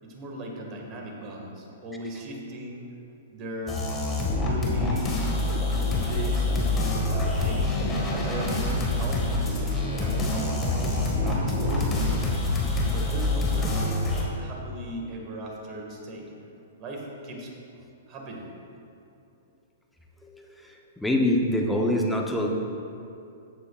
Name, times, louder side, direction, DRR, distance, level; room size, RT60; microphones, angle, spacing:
voice 1, 0.0-2.8 3.3-3.8 4.3-7.8 8.2-10.5 11.2-12.4 12.9-14.1 14.4-16.3 16.6-18.5, right 1 dB, 35° right, 0 dB, 2.0 m, -38 dB
sound 1, 3.7-14.2, left 2 dB, 20° left, 1.8 m, -26 dB
sound 2, 5.0-12.3, right 7 dB, 60° right, 0.5 m, -37 dB
voice 2, 20.6-22.5, left 1 dB, 5° left, 0 dB, 1.0 m, -25 dB
14.0 x 8.3 x 2.5 m, 2.6 s
figure-of-eight pair, 110°, 0 cm